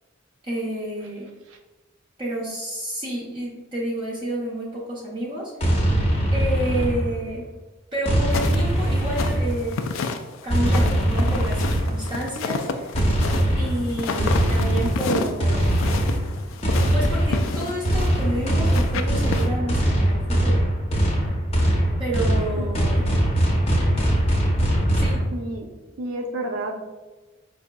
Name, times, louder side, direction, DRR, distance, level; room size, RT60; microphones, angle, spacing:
voice 1, 0.4-1.3 2.2-5.7 6.3-7.5 7.9-9.8 10.4-13.0 13.6-15.7 16.9-20.6 22.0-23.0 24.9-25.2, right 1 dB, 25° right, -5 dB, 0.5 m, -29 dB
sound 1, 5.6-7.4 8.0-9.8 10.5-12.1 12.9-25.2, right 1 dB, 30° left, 0.6 m, -22 dB
sound 2, 8.3-19.5, left 4 dB, 75° left, 0.3 m, -30 dB
voice 2, 22.6-23.0 25.3-25.7 26.0-26.7, right 1 dB, 80° right, 3 dB, 0.5 m, -31 dB
4.8 x 2.6 x 2.2 m, 1.2 s
head